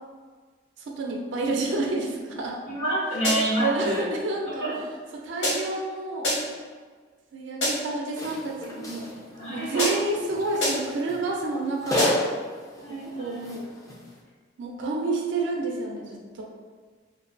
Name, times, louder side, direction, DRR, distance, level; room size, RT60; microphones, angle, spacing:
voice 1, 0.8-2.6 3.6-4.6 5.1-6.3 7.3-9.1 9.5-12.2 12.9-13.7 14.6-16.4, right 3 dB, 65° right, 0 dB, 0.3 m, -29 dB
voice 2, 2.6-4.0 4.6-4.8 8.8-8.9 9.3-10.0 12.8-13.4, right 1 dB, 80° left, -9 dB, 1.4 m, -28 dB
sound 1, 3.2-3.7 5.4-5.9 6.2-6.7 7.6-8.0 9.8-10.2 10.6-11.0 12.0-12.4, equal, 60° left, 0.8 m, -28 dB
sound 2, 8.2-14.2, left 1 dB, 15° left, 0.3 m, -33 dB
2.4 x 2.2 x 2.4 m, 1.5 s
head